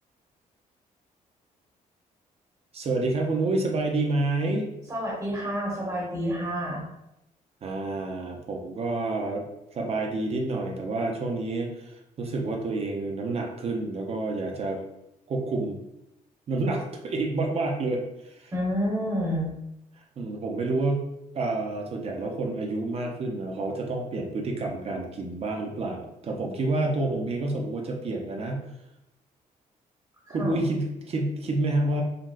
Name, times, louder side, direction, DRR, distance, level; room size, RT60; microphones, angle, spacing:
voice 1, 2.7-4.7 7.6-14.8 15.3-15.8 16.5-18.5 20.2-21.1 21.3-28.6 30.3-32.0, right 2 dB, 45° right, 1 dB, 0.5 m, -29 dB
voice 2, 4.9-6.8 18.5-19.6 30.3-30.6, equal, 25° right, -5 dB, 1.3 m, -29 dB
3.9 x 2.2 x 2.5 m, 0.85 s
cardioid pair, 110°, 14 cm